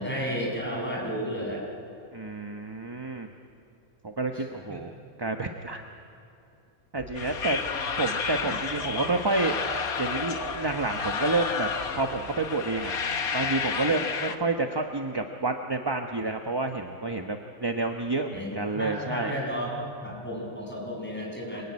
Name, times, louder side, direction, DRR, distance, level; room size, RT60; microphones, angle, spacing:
voice 1, 0.0-1.6 4.3-4.4 4.7-4.8 18.3-21.6, equal, 5° left, -3 dB, 6.6 m, -32 dB
voice 2, 2.1-3.3 4.0-4.9 5.2-5.8 6.9-7.6 8.0-9.5 10.0-11.7 12.0-12.9 13.3-19.4 21.5-21.6, right 3 dB, 20° right, 5 dB, 0.9 m, -29 dB
sound 1, 7.0-13.8, right 4 dB, 55° right, 2.8 m, -43 dB
sound 2, 7.1-14.3, left 5 dB, 90° left, 1.8 m, -31 dB
26.0 x 22.5 x 9.7 m, 2.6 s
omnidirectional pair, 1.5 m